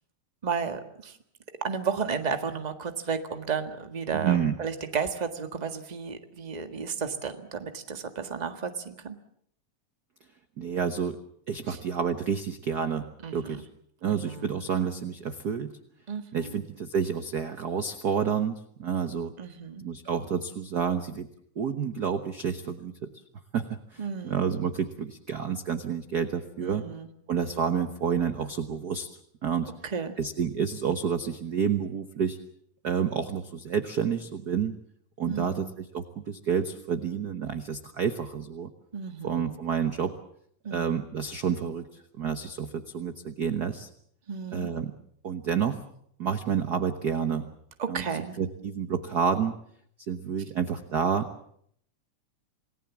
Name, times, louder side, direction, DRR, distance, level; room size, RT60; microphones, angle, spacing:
voice 1, 0.4-1.2 1.6-9.2 11.7-11.8 13.2-13.6 14.1-14.5 16.1-16.6 19.4-19.8 24.0-24.5 26.6-27.1 29.8-30.2 35.3-35.7 38.9-39.5 40.6-41.0 44.3-44.7 47.8-48.4, right 6 dB, 20° right, 7 dB, 1.1 m, -33 dB
voice 2, 4.1-4.5 10.6-11.2 11.5-13.6 14.0-15.7 16.3-19.3 19.8-21.3 21.6-23.1 23.5-26.9 27.3-29.1 29.4-29.7 30.2-32.4 32.8-34.7 35.2-38.7 39.2-40.1 40.7-43.9 44.5-44.9 45.2-45.8 46.2-47.5 47.9-49.6 50.1-51.3, right 7 dB, 55° right, 9 dB, 1.0 m, -29 dB
28.0 x 19.0 x 7.3 m, 0.67 s
omnidirectional pair, 3.3 m